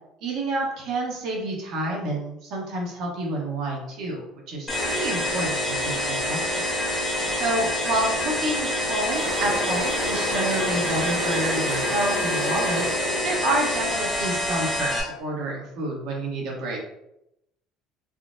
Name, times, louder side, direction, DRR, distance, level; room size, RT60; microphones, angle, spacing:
voice 1, 0.2-6.6 7.4-16.8, right 1 dB, 60° right, -1 dB, 0.9 m, -29 dB
sound 1, 4.7-15.0, left 1 dB, 15° left, 0.6 m, -27 dB
Engine / Drill, 8.1-8.4 8.7-14.8, equal, 85° right, 1.1 m, -31 dB
3.5 x 2.0 x 2.5 m, 0.84 s
cardioid pair, 140°, 0 cm